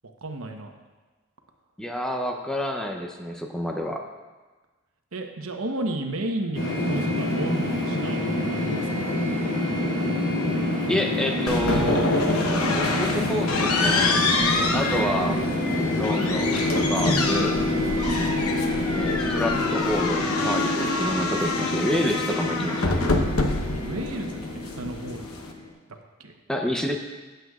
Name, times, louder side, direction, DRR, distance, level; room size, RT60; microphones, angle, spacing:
voice 1, 0.2-0.7 5.1-9.2 23.8-25.3 25.9-26.3, right 2 dB, 75° right, 4 dB, 1.0 m, -33 dB
voice 2, 1.8-4.0 10.9-12.1 12.7-15.4 16.0-17.5 18.9-23.0 26.5-27.0, equal, 5° left, 2 dB, 0.6 m, -29 dB
sound 1, 6.5-25.7, left 1 dB, 65° left, 2.7 m, -27 dB
sound 2, 11.5-25.5, left 3 dB, 85° left, 1.0 m, -27 dB
15.5 x 8.0 x 2.4 m, 1.3 s
head